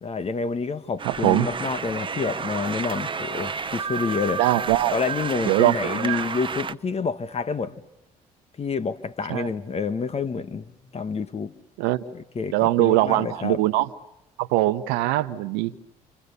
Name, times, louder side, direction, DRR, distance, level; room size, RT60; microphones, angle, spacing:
voice 1, 0.0-4.4 4.9-7.7 8.6-11.5 12.1-13.6, left 5 dB, 40° left, 1.3 m, -28 dB
sound 1, 1.0-6.7, right 5 dB, 30° right, 0.9 m, -31 dB
voice 2, 1.0-1.5 4.4-5.0 5.5-6.2 9.3-9.5 11.8-12.0 12.5-13.9 14.4-15.8, right 16 dB, 85° right, 1.0 m, -22 dB
29.0 x 27.0 x 6.9 m
supercardioid pair, 65°, 17 cm